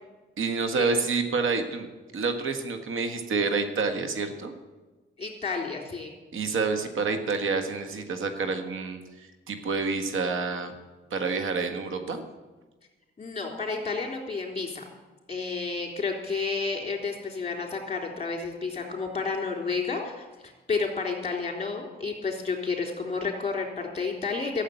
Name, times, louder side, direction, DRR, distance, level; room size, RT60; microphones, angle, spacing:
voice 1, 0.4-4.5 6.3-10.7 11.1-12.2, right 4 dB, 75° right, 7 dB, 1.6 m, -28 dB
voice 2, 5.2-6.1 13.2-14.9 15.3-24.6, left 4 dB, 30° left, 2 dB, 3.7 m, -31 dB
13.5 x 7.2 x 9.2 m, 1.2 s
cardioid pair, 85°, 21 cm